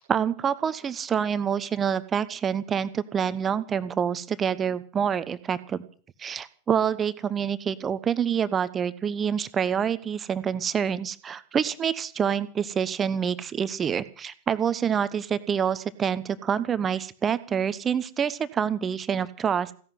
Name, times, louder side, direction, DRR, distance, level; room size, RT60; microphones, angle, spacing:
voice 1, 0.0-5.8 6.2-19.7, right 7 dB, 20° right, 15 dB, 1.1 m, -27 dB
16.5 x 11.0 x 7.7 m, 0.43 s
figure-of-eight pair, 90°, 0 cm